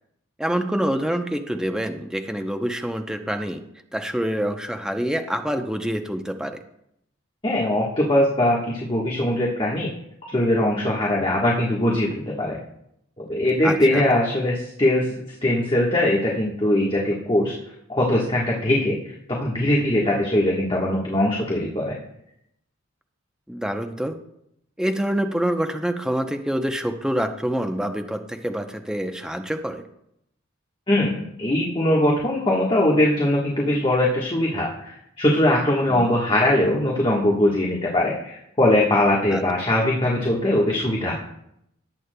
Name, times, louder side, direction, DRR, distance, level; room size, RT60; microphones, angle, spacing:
voice 1, 0.4-3.6 3.9-6.6 13.6-14.1 23.5-24.2 24.8-29.8 35.9-36.1 39.3-39.4, right 1 dB, 5° right, 6 dB, 0.6 m, -26 dB
voice 2, 7.4-9.9 10.3-12.6 13.2-15.1 15.4-17.5 17.9-22.0 30.9-41.1, left 1 dB, 25° left, -3 dB, 1.3 m, -21 dB
17.5 x 8.4 x 2.2 m, 0.76 s
head